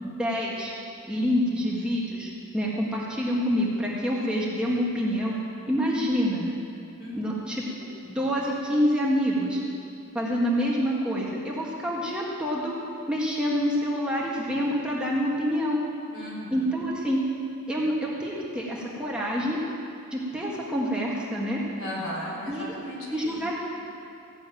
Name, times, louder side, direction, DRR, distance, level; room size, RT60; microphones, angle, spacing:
voice 1, 0.0-0.7 1.1-5.3 5.7-6.5 7.1-7.6 8.0-9.6 10.1-12.7 13.1-15.8 16.5-17.2 17.7-19.6 20.1-21.6 22.5-22.7 23.1-23.5, equal, 5° right, -5 dB, 1.7 m, -27 dB
voice 2, 7.0-7.5 16.1-16.6 21.8-23.4, equal, 65° left, -5 dB, 4.1 m, -36 dB
15.0 x 6.9 x 9.1 m, 2.7 s
head